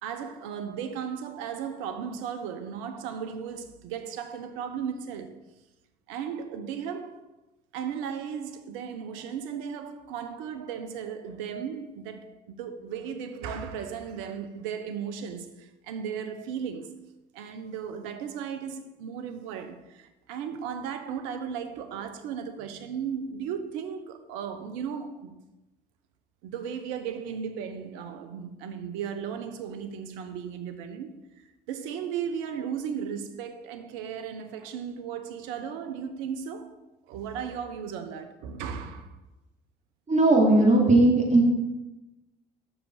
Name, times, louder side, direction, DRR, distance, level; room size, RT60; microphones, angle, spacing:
voice 1, 0.0-5.4 6.1-7.2 7.7-17.0 17.3-25.3 26.4-36.8 37.1-39.1, right 7 dB, 80° right, 1.0 m, -36 dB
voice 2, 40.1-41.5, right 2 dB, 35° right, 3.2 m, -18 dB
6.6 x 6.1 x 6.4 m
hypercardioid pair, 60°, 20 cm